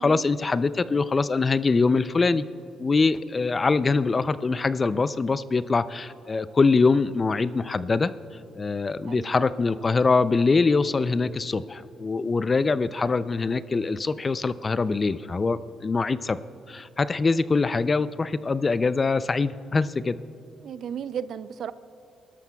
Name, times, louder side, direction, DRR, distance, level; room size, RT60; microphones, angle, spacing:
voice 1, 0.0-2.5 2.8-8.1 8.6-16.4 16.7-20.2, left 4 dB, 30° left, 15 dB, 0.4 m, -23 dB
voice 2, 20.6-21.7, right 8 dB, 65° right, 15 dB, 0.4 m, -35 dB
22.0 x 13.0 x 2.3 m, 2.5 s
cardioid pair, 90°, 0 cm